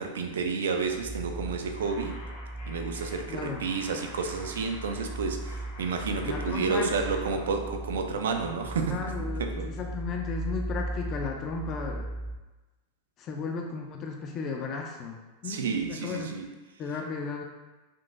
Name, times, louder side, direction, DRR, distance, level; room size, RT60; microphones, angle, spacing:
voice 1, 0.0-2.1 2.7-9.0 9.4-9.7 15.4-16.5, right 5 dB, 85° right, 4 dB, 0.4 m, -30 dB
sound 1, 0.9-12.4, right 1 dB, 40° right, 0.6 m, -38 dB
sound 2, 1.7-7.6, left 1 dB, 85° left, 1.3 m, -47 dB
voice 2, 3.3-3.6 6.3-6.9 8.9-12.1 13.2-16.3 16.8-17.4, left 4 dB, 35° left, 2 dB, 0.4 m, -34 dB
3.7 x 2.5 x 2.5 m, 1.1 s
hypercardioid pair, 115°, 0 cm